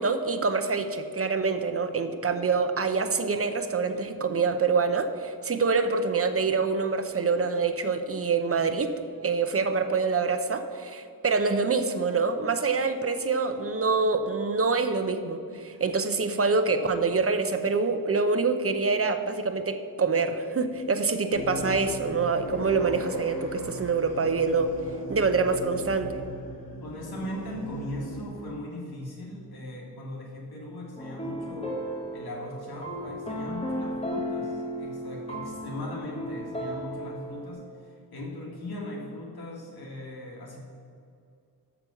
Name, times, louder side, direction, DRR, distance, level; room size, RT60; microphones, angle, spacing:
voice 1, 0.0-8.9 9.2-24.7 25.1-26.1, right 4 dB, 40° right, 9 dB, 0.7 m, -26 dB
sound 1, 21.3-28.2, left 1 dB, 65° left, 1.6 m, -38 dB
voice 2, 26.8-31.8 32.1-40.6, left 1 dB, 85° left, -2 dB, 2.0 m, -39 dB
sound 2, 31.0-37.5, equal, 15° left, 1.2 m, -35 dB
6.7 x 6.0 x 6.9 m, 2.4 s
wide cardioid pair, 75°, 37 cm